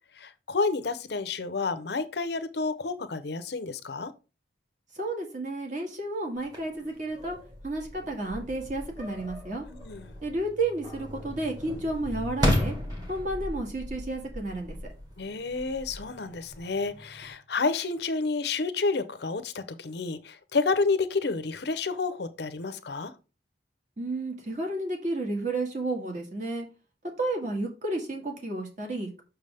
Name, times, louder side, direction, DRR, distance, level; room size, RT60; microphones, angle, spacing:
voice 1, 0.1-4.1 9.7-10.1 15.2-23.1, left 4 dB, 60° left, 0.7 m, -30 dB
voice 2, 4.9-7.4 7.6-9.7 10.2-12.7 13.1-14.8 24.0-26.7 27.2-29.2, right 2 dB, 40° right, 1.8 m, -32 dB
sound 1, 6.4-17.3, left 1 dB, 20° right, 1.6 m, -35 dB
6.7 x 6.1 x 3.4 m
head